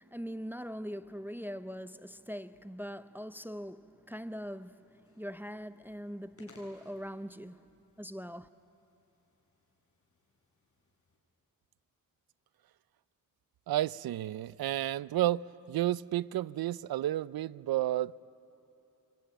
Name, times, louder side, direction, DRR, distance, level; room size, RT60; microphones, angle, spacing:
voice 1, 0.0-8.5, equal, 5° right, 0.5 m, -42 dB
sound 1, 4.2-11.2, left 2 dB, 40° left, 6.2 m, -65 dB
voice 2, 13.7-15.4 15.7-18.1, right 14 dB, 80° right, 0.5 m, -31 dB
24.5 x 24.0 x 9.0 m
cardioid pair, 80°, 36 cm